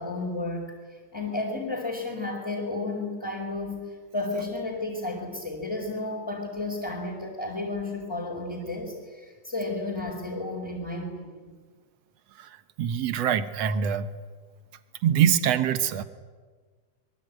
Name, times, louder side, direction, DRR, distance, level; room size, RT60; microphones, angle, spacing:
voice 1, 0.0-3.8 4.1-11.5, left 2 dB, 10° left, -4 dB, 4.2 m, -32 dB
voice 2, 12.4-14.1 15.0-16.0, right 9 dB, 65° right, 11 dB, 2.1 m, -24 dB
27.0 x 22.5 x 9.2 m, 1.5 s
omnidirectional pair, 3.4 m